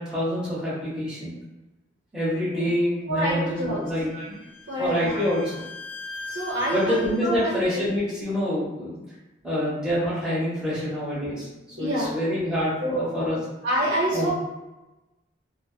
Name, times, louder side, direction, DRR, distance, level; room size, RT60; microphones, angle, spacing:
voice 1, 0.0-1.3 2.1-4.4 4.8-5.5 6.7-8.9 9.4-11.5 11.8-13.4 14.1-14.3, equal, 5° right, -10 dB, 1.0 m, -26 dB
voice 2, 3.1-3.8 4.1-4.3 4.7-5.3 6.3-7.9 11.7-12.1 12.8-13.0 13.6-14.3, right 1 dB, 85° right, -7 dB, 0.8 m, -27 dB
Bowed string instrument, 3.7-7.5, left 3 dB, 75° left, 0.4 m, -41 dB
2.9 x 2.1 x 3.0 m, 1.0 s
head